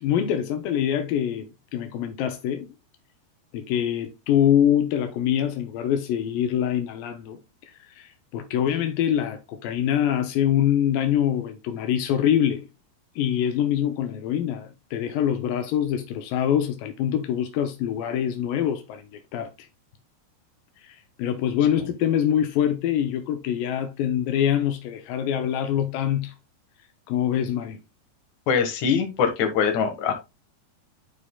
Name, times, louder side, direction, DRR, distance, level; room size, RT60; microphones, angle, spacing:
voice 1, 0.0-2.7 3.5-12.7 13.2-19.7 20.8-26.3 27.1-27.8, left 10 dB, 85° left, 1.9 m, -24 dB
voice 2, 28.5-30.1, left 6 dB, 60° left, 2.1 m, -23 dB
11.0 x 4.9 x 2.2 m
omnidirectional pair, 4.9 m